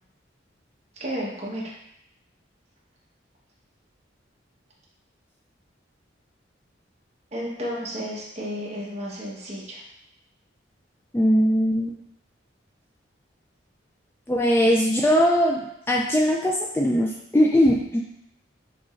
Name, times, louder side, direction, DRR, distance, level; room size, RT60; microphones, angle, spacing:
voice 1, 1.0-1.7 7.3-9.8 14.8-15.0, equal, 35° right, -5 dB, 1.1 m, -32 dB
voice 2, 11.1-12.0 14.3-18.0, equal, 10° left, -2 dB, 0.3 m, -20 dB
6.2 x 3.1 x 2.5 m, 0.79 s
head